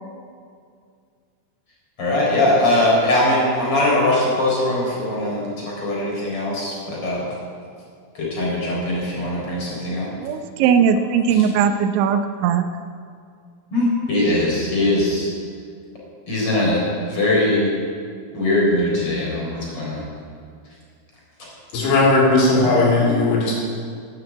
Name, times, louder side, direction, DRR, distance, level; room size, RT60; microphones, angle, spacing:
voice 1, 2.0-7.3 8.1-10.1 11.3-11.5 13.7-15.3 16.3-17.7 18.3-20.0 22.6-22.9, left 1 dB, 30° left, -4 dB, 4.8 m, -21 dB
voice 2, 10.2-12.7, right 7 dB, 85° right, 7 dB, 3.1 m, -19 dB
voice 3, 21.7-23.5, left 2 dB, 90° left, -4 dB, 5.7 m, -17 dB
12.0 x 11.0 x 8.5 m, 2.2 s
omnidirectional pair, 5.3 m